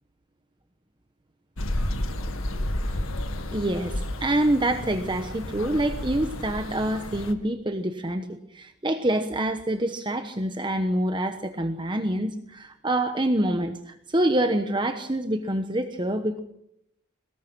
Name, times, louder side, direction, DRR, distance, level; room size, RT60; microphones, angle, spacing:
sound 1, 1.6-7.3, left 1 dB, 75° left, 1.9 m, -31 dB
voice 1, 3.5-8.3 8.5-16.4, right 1 dB, 20° right, 7 dB, 1.0 m, -26 dB
22.5 x 19.5 x 6.1 m, 0.76 s
head